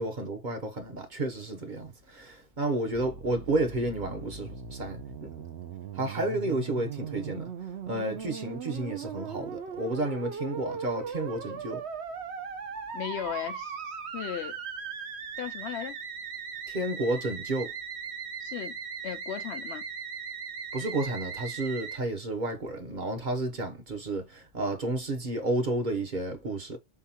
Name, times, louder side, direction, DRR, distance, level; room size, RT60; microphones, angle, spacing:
voice 1, 0.0-5.3 5.9-7.5 7.9-11.8 16.7-17.7 20.7-26.8, right 2 dB, 45° right, 1.0 m, -31 dB
Musical instrument, 2.9-22.0, right 6 dB, 65° right, 1.1 m, -39 dB
voice 2, 12.9-14.6 15.4-16.0 18.4-18.8 19.0-19.8, left 10 dB, 70° left, 0.8 m, -36 dB
4.6 x 3.6 x 2.8 m
omnidirectional pair, 1.2 m